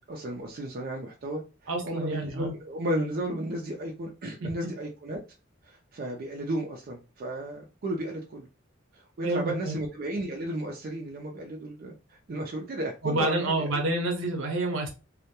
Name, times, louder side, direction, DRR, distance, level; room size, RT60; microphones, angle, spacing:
voice 1, 0.1-5.2 5.6-8.5 8.9-13.8, right 1 dB, 45° right, 0.4 m, -34 dB
voice 2, 1.7-2.5 4.4-4.5 9.2-9.8 13.0-14.9, right 2 dB, 75° right, 0.7 m, -28 dB
2.1 x 2.1 x 2.8 m
head